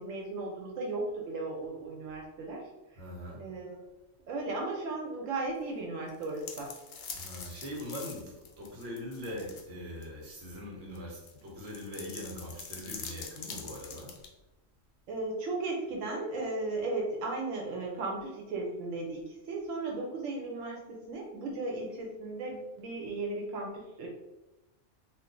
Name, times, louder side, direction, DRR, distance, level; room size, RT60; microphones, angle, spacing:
voice 1, 0.0-2.6 3.4-3.8 4.3-6.7 15.1-24.1, right 2 dB, 85° right, -1 dB, 1.0 m, -36 dB
voice 2, 3.0-3.4 7.1-14.1, left 1 dB, 60° right, -2 dB, 1.1 m, -42 dB
sound 1, 6.1-9.7 10.0-10.1 10.9-14.3, left 5 dB, 60° left, 0.5 m, -44 dB
2.5 x 2.3 x 3.7 m, 0.98 s
omnidirectional pair, 1.3 m